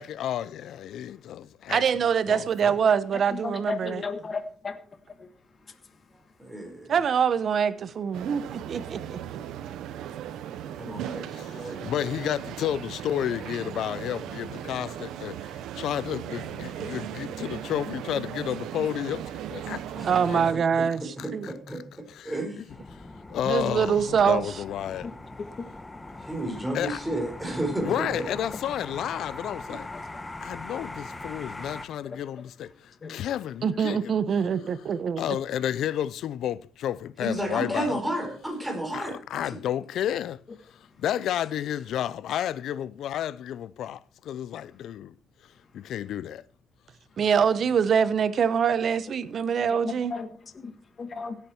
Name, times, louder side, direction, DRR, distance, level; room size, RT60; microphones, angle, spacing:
voice 1, 0.0-1.8 2.3-2.9 11.3-11.6 11.8-20.4 21.2-21.5 22.6-22.7 23.3-25.1 26.7-27.0 27.8-29.9 30.4-34.1 35.2-38.0 38.9-40.4 41.0-45.1 45.7-46.4, left 10 dB, 75° left, 0.5 m, -31 dB
voice 2, 1.7-4.0 6.9-9.2 20.0-21.5 23.5-24.5 33.6-35.4 47.2-50.1, right 7 dB, 55° right, 1.0 m, -24 dB
voice 3, 3.3-4.8 25.0-25.1 25.4-25.5 29.9-30.0 32.0-32.2 33.0-33.1 49.7-50.3 50.6-50.7 51.0-51.4, left 4 dB, 40° left, 1.5 m, -34 dB
voice 4, 6.4-6.9 10.8-11.8 20.0-20.1 21.0-21.8 22.3-22.6 26.2-28.2 37.2-39.2, right 1 dB, 10° right, 4.6 m, -32 dB
sound 1, 8.1-20.5, right 10 dB, 85° right, 1.0 m, -37 dB
sound 2, 22.7-31.9, left 2 dB, 15° left, 1.3 m, -41 dB
16.5 x 8.5 x 4.4 m
cardioid pair, 90°, 0 cm